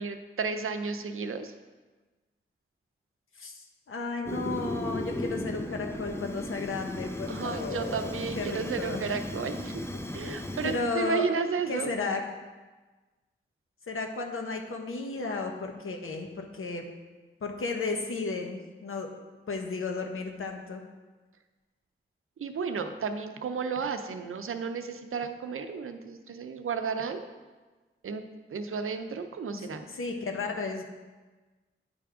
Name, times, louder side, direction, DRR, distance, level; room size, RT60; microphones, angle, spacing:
voice 1, 0.0-1.5 7.3-9.8 10.1-12.0 22.4-27.2 28.0-28.2 28.5-29.8, right 5 dB, 80° right, 8 dB, 0.6 m, -33 dB
voice 2, 3.4-9.1 10.6-11.3 11.7-12.2 13.9-16.8 17.4-19.1 19.5-20.8 29.5-30.8, left 3 dB, 80° left, 3 dB, 1.0 m, -34 dB
Fire, 4.2-10.9, left 1 dB, 10° left, 0.6 m, -36 dB
9.0 x 3.5 x 4.9 m, 1.3 s
cardioid pair, 45°, 21 cm